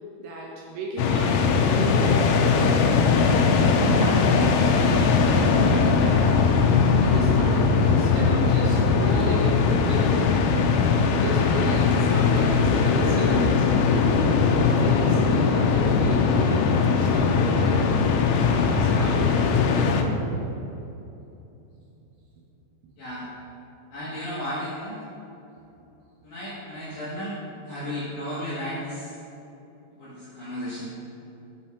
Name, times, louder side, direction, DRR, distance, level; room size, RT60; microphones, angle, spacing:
voice 1, 0.2-6.4 7.0-10.3 11.2-13.7 14.7-17.9 18.2-19.7, right 1 dB, 80° right, -3 dB, 2.4 m, -34 dB
sound 1, 1.0-20.0, left 5 dB, 90° left, 3.1 m, -20 dB
voice 2, 23.0-23.3 23.9-25.0 26.2-27.3 27.6-29.2 30.0-30.9, equal, 70° left, -10 dB, 1.9 m, -34 dB
7.1 x 5.6 x 4.3 m, 2.9 s
omnidirectional pair, 5.5 m